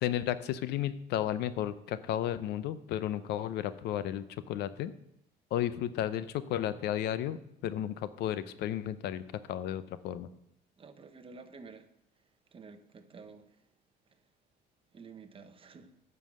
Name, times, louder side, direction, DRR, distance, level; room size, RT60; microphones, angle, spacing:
voice 1, 0.0-4.9 5.5-7.4 7.6-9.2 9.5-10.3, left 11 dB, 80° left, 0.6 m, -33 dB
voice 2, 10.8-11.9 12.5-13.5 14.9-15.9, right 4 dB, 30° right, 1.0 m, -50 dB
9.4 x 5.5 x 7.5 m
cardioid pair, 110°, 17 cm